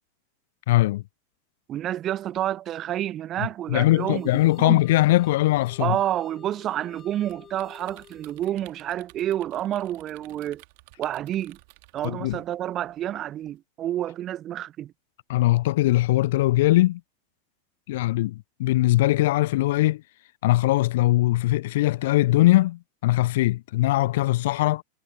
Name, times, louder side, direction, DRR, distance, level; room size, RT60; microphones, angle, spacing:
voice 1, 0.7-1.0 3.4-6.0 12.0-12.4 15.3-17.0 17.9-20.0 20.4-24.8, left 17 dB, 55° left, 0.4 m, -21 dB
voice 2, 1.7-4.3 4.6-4.8 5.8-10.6 11.0-11.6 11.9-14.9, right 12 dB, 30° right, 0.9 m, -29 dB
sound 1, 3.7-8.6, left 8 dB, 25° left, 6.5 m, -51 dB
sound 2, 6.9-13.6, right 28 dB, 45° right, 2.0 m, -54 dB
figure-of-eight pair, 90°, 0 cm